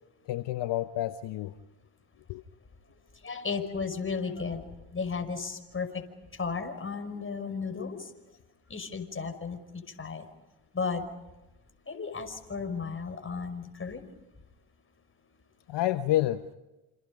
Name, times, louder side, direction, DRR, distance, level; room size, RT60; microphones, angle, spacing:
voice 1, 0.3-1.5 2.3-2.4 15.7-16.5, left 14 dB, 65° left, 10 dB, 1.1 m, -29 dB
voice 2, 3.2-4.6 4.9-6.0 6.4-8.1 8.7-9.6 10.0-10.3 10.7-11.0 11.9-14.0, left 5 dB, 30° left, 7 dB, 5.5 m, -34 dB
28.0 x 28.0 x 5.3 m, 1.0 s
supercardioid pair, 65°, 44 cm